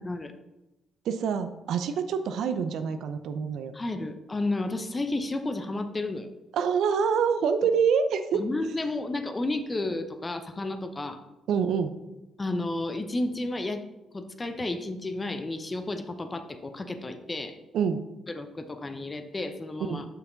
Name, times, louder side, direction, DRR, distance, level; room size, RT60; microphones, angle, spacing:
voice 1, 1.1-3.8 6.5-8.4 11.5-11.9 17.7-18.0 19.9-20.0, right 6 dB, 75° right, 10 dB, 0.5 m, -26 dB
voice 2, 3.7-6.3 8.3-11.2 12.4-13.8 14.1-17.6 18.3-20.1, left 2 dB, 25° left, 8 dB, 0.7 m, -32 dB
5.9 x 5.8 x 3.9 m, 1.0 s
cardioid pair, 90°, 0 cm